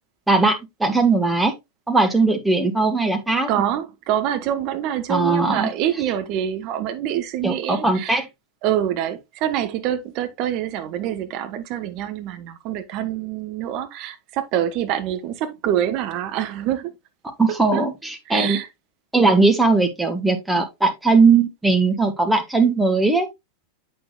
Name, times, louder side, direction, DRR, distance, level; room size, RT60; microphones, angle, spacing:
voice 1, 0.3-1.5 1.9-3.5 5.1-5.7 7.4-8.3 17.4-18.6 19.1-23.3, right 3 dB, 5° right, 1.4 m, -19 dB
voice 2, 3.5-8.2 8.6-16.9 17.5-17.8 18.3-18.7, right 11 dB, 40° right, 1.0 m, -26 dB
8.5 x 6.5 x 2.3 m
figure-of-eight pair, 90°, 0 cm